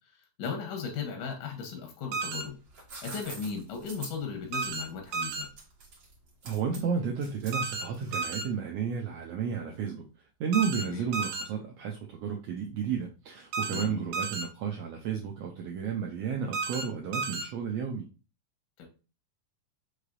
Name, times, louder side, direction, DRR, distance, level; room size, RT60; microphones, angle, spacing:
voice 1, 0.4-2.6 3.0-5.5 10.9-11.1 13.7-14.0 18.8-18.9, left 6 dB, 90° left, 3 dB, 2.5 m, -36 dB
sound 1, 2.1-2.4 4.5-4.8 5.1-5.4 7.5-7.8 8.1-8.4 10.5-10.8 11.1-11.4 13.5-13.8 14.1-14.4 16.5-16.8 17.1-17.4, right 4 dB, 70° right, 1.7 m, -32 dB
sound 2, 2.5-8.5, right 3 dB, 45° right, 1.9 m, -46 dB
voice 2, 6.4-10.1 10.4-18.1, right 7 dB, 85° right, 1 dB, 1.4 m, -32 dB
5.6 x 3.2 x 2.5 m, 0.33 s
omnidirectional pair, 3.6 m